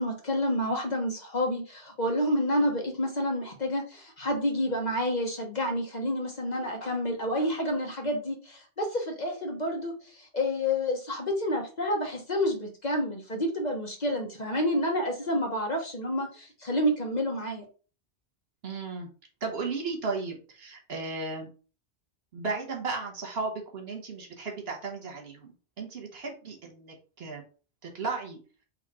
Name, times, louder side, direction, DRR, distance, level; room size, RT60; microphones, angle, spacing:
voice 1, 0.0-17.6, left 1 dB, 40° left, 2 dB, 1.1 m, -29 dB
voice 2, 18.6-19.1 19.4-21.5 22.3-25.5 25.8-27.4 27.9-28.4, right 4 dB, 65° right, 2 dB, 1.3 m, -35 dB
4.1 x 2.8 x 4.1 m, 0.36 s
omnidirectional pair, 1.1 m